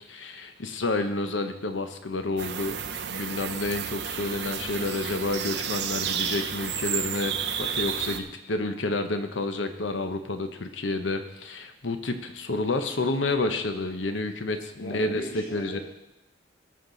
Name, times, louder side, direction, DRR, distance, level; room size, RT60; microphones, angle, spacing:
voice 1, 0.1-2.8 3.1-15.8, left 2 dB, 85° left, 7 dB, 0.9 m, -29 dB
sound 1, 2.4-8.2, right 8 dB, 60° right, 0.7 m, -31 dB
voice 2, 14.8-15.8, left 1 dB, 55° left, -5 dB, 1.8 m, -39 dB
18.5 x 6.7 x 4.0 m, 0.94 s
head